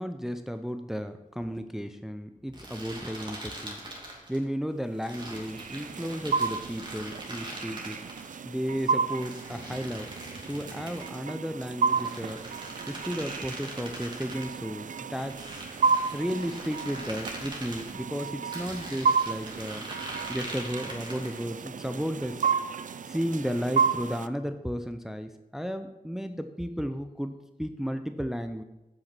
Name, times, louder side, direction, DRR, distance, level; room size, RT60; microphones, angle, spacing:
voice 1, 0.0-3.8 4.3-8.0 8.5-10.1 10.5-12.4 12.9-15.6 16.1-19.9 20.3-22.5 23.0-28.6, equal, 5° right, 8 dB, 0.5 m, -34 dB
sound 1, 2.5-4.4 5.0-8.4 9.1-11.2 11.8-14.5 15.2-17.9 18.5-21.5, right 1 dB, 30° right, 2.5 m, -42 dB
sound 2, 5.0-24.3, right 5 dB, 60° right, 0.4 m, -32 dB
8.1 x 7.0 x 6.0 m, 1.0 s
wide cardioid pair, 90°, 15 cm